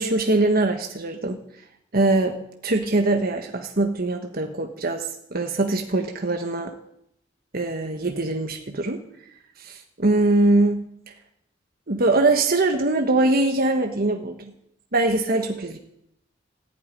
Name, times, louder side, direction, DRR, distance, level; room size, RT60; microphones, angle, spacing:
voice 1, 0.0-1.4 1.9-2.3 2.6-6.7 7.5-9.0 9.6-10.8 11.9-14.5 14.9-15.8, right 2 dB, 55° right, 5 dB, 1.3 m, -22 dB
14.5 x 8.9 x 9.9 m, 0.74 s
head